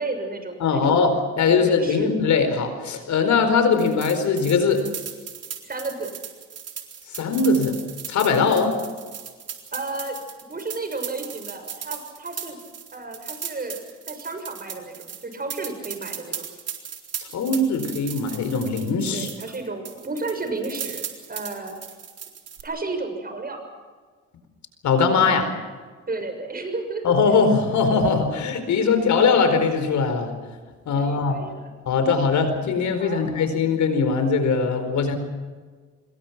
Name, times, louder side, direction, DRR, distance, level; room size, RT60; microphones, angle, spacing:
voice 1, 0.0-1.0 1.5-2.2 5.6-6.1 9.7-10.2 10.5-12.6 12.9-13.8 14.1-16.4 19.1-21.8 22.6-23.6 26.1-27.1 27.9-28.0 30.9-32.3 33.0-33.3, right 3 dB, 30° right, 6 dB, 6.7 m, -32 dB
voice 2, 0.6-4.8 7.1-7.8 8.1-8.7 17.3-19.3 24.8-25.5 27.0-30.4 30.9-31.4 31.9-35.2, left 4 dB, 70° left, 8 dB, 4.5 m, -21 dB
sound 1, 3.7-19.6 19.9-22.6, right 7 dB, 55° right, 4.0 m, -37 dB
26.0 x 22.5 x 6.1 m, 1.5 s
cardioid pair, 90°, 30 cm